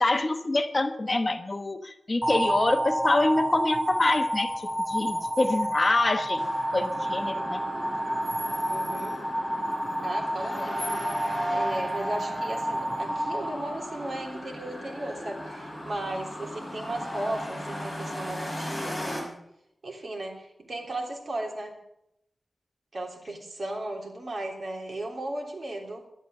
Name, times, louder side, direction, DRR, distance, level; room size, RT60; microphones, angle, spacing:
voice 1, 0.0-7.6, left 2 dB, 35° left, 8 dB, 1.0 m, -26 dB
sound 1, 2.2-14.4, right 1 dB, 20° right, 2.9 m, -30 dB
sound 2, 6.4-19.2, equal, 10° left, 5.2 m, -36 dB
voice 2, 8.7-9.2 10.0-10.9 11.5-19.4 19.8-21.8 22.9-26.0, right 1 dB, 55° right, 1 dB, 3.3 m, -35 dB
12.0 x 11.5 x 7.6 m, 0.79 s
wide cardioid pair, 95°, 0 cm